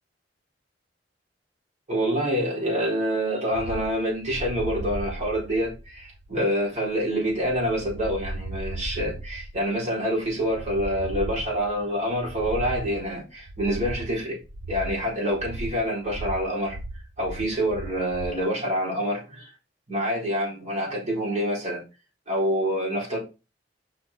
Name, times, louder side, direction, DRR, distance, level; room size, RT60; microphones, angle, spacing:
voice 1, 1.9-14.4 14.7-16.8 17.2-19.5 19.9-21.8 22.3-23.2, equal, 40° right, 4.5 m, -26 dB
sound 1, 3.5-18.4, right 1 dB, 80° right, 0.9 m, -37 dB
6.1 x 6.0 x 4.3 m
head